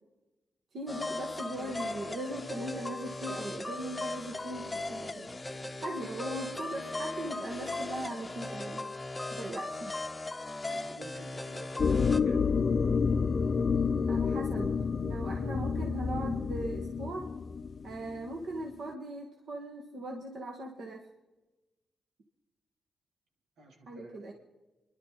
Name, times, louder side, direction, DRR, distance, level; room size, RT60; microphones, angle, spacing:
voice 1, 0.7-5.3 5.8-8.9 9.3-10.0 14.1-17.3 17.8-21.1 23.9-24.3, right 1 dB, 60° right, 0 dB, 1.9 m, -39 dB
sound 1, 0.9-12.2, left 2 dB, 15° left, 0.8 m, -38 dB
voice 2, 10.6-12.5 23.6-24.2, right 2 dB, 85° right, 0 dB, 3.5 m, -51 dB
sound 2, 11.8-18.3, left 5 dB, 40° left, 0.4 m, -29 dB
29.5 x 12.0 x 4.2 m, 1.1 s
wide cardioid pair, 135°, 0 cm